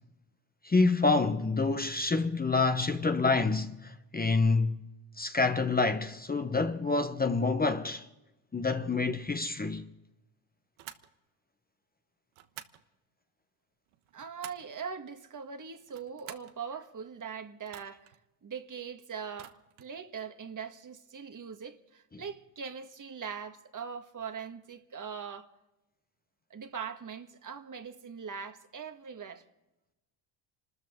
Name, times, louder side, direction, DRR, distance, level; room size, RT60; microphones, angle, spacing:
voice 1, 0.6-4.8 5.2-8.1 8.5-9.8, left 3 dB, 20° left, 1.0 m, -27 dB
sound 1, 10.8-11.1 12.3-12.8 13.9-14.7 15.8-16.6 17.6-18.2 19.3-19.9, right 12 dB, 85° right, 1.3 m, -49 dB
voice 2, 14.1-18.1 18.4-25.5 26.5-29.4, right 6 dB, 40° right, 1.6 m, -41 dB
26.5 x 13.5 x 3.7 m
supercardioid pair, 75°, 49 cm